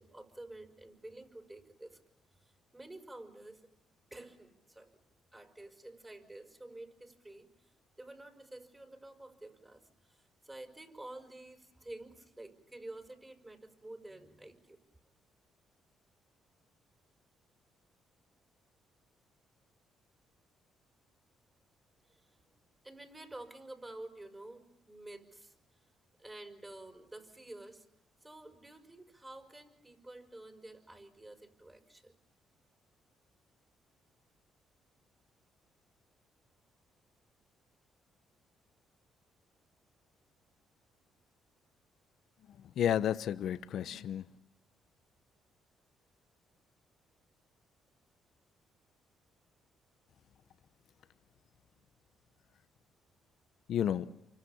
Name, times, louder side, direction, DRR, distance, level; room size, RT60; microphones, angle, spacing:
voice 1, 0.0-2.0 2.4-3.7 4.1-4.9 5.3-14.8 22.1-22.5 22.8-25.8 26.2-27.9 28.2-32.1, right 2 dB, 15° right, 5.4 m, -50 dB
voice 2, 42.5-44.3 53.7-54.1, left 10 dB, 70° left, 0.9 m, -32 dB
29.0 x 25.0 x 7.2 m
supercardioid pair, 65°, 0 cm